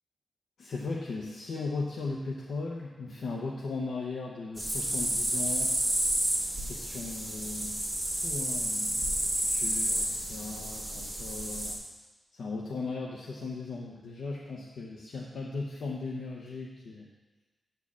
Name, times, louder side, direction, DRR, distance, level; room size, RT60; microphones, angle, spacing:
voice 1, 0.6-5.8 6.7-7.9 8.1-11.8 12.3-17.1, left 3 dB, 90° left, -2 dB, 0.9 m, -37 dB
sound 1, 4.6-11.7, right 1 dB, 5° right, 1.8 m, -30 dB
9.6 x 4.6 x 7.3 m, 1.2 s
wide cardioid pair, 175°, 0 cm